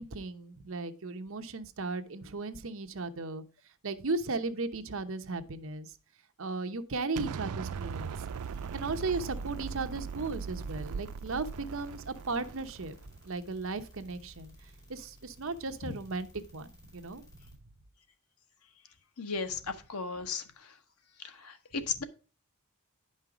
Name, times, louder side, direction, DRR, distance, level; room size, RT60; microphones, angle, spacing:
voice 1, 0.0-3.4 3.8-5.9 6.4-8.2 8.7-13.0 13.2-14.5 14.9-17.2, right 3 dB, 65° right, 9 dB, 0.9 m, -36 dB
Explosion, 7.2-13.2, right 6 dB, 90° right, 0.4 m, -39 dB
sound 1, 7.7-17.5, right 1 dB, 15° left, 4.6 m, -56 dB
voice 2, 19.2-20.7 21.2-22.0, left 4 dB, 85° left, 8 dB, 1.3 m, -36 dB
10.0 x 5.5 x 4.9 m, 0.33 s
head